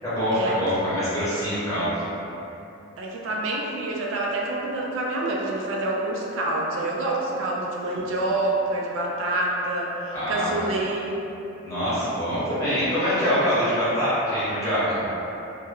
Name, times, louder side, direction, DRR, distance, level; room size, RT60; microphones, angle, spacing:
voice 1, 0.0-2.0 7.9-8.1 10.1-10.5 11.6-15.0, equal, 15° left, -13 dB, 0.9 m, -24 dB
voice 2, 3.0-11.3, right 2 dB, 70° right, -2 dB, 0.3 m, -27 dB
2.1 x 2.1 x 3.6 m, 3.0 s
head